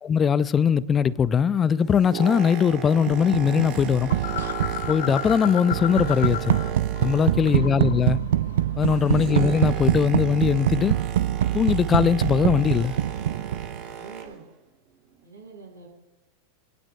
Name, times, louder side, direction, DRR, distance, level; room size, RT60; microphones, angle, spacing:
voice 1, 0.0-4.1 4.9-6.6 7.0-8.2 8.8-10.9 11.5-13.0, left 7 dB, 20° left, 0.6 m, -21 dB
Boat Water vehicle, 1.7-7.7 8.0-14.5 15.1-15.2, right 9 dB, 40° right, 2.1 m, -37 dB
sound 1, 3.1-13.9, right 12 dB, 60° right, 0.5 m, -25 dB
sound 2, 4.1-6.7 7.0-9.3, left 13 dB, 55° left, 0.4 m, -34 dB
voice 2, 7.2-7.7 13.8-14.5 15.2-15.9, right 4 dB, 75° right, 6.6 m, -46 dB
27.0 x 17.5 x 2.3 m
figure-of-eight pair, 90°, 0 cm